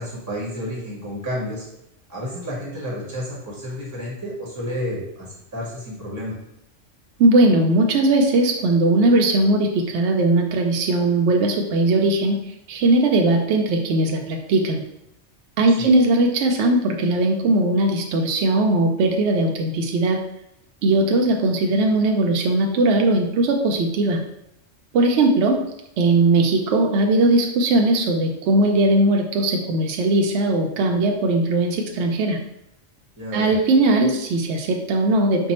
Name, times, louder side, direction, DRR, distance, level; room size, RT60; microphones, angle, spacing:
voice 1, 0.0-1.7 2.1-6.3 15.8-15.9 33.2-33.6, equal, 15° right, -4 dB, 0.8 m, -31 dB
voice 2, 7.2-12.4 12.7-14.8 15.6-20.2 20.8-24.2 24.9-25.6 26.0-32.4 33.3-35.5, right 2 dB, 70° right, 2 dB, 0.8 m, -19 dB
4.4 x 2.2 x 4.2 m, 0.80 s
omnidirectional pair, 1.3 m